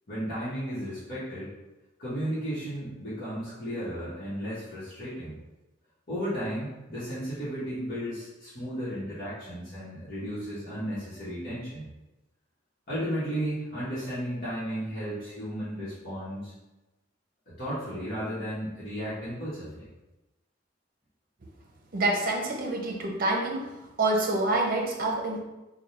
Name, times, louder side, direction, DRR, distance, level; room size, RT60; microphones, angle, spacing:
voice 1, 0.1-1.5 2.0-5.4 6.1-11.9 12.9-16.5 17.5-19.9, equal, 50° left, -11 dB, 1.1 m, -34 dB
voice 2, 21.9-23.6 24.0-25.4, right 2 dB, 50° right, 0 dB, 0.7 m, -27 dB
3.5 x 2.3 x 4.2 m, 1.0 s
head